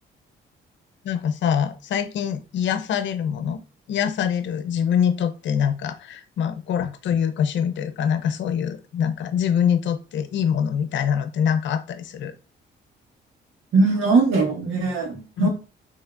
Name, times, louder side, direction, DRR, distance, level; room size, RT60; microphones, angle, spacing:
voice 1, 1.0-3.6 3.9-12.3 15.4-15.5, left 8 dB, 70° left, 10 dB, 0.7 m, -24 dB
voice 2, 13.7-15.5, right 3 dB, 80° right, 0 dB, 1.7 m, -20 dB
5.6 x 3.4 x 2.5 m, 0.34 s
cardioid pair, 90°, 20 cm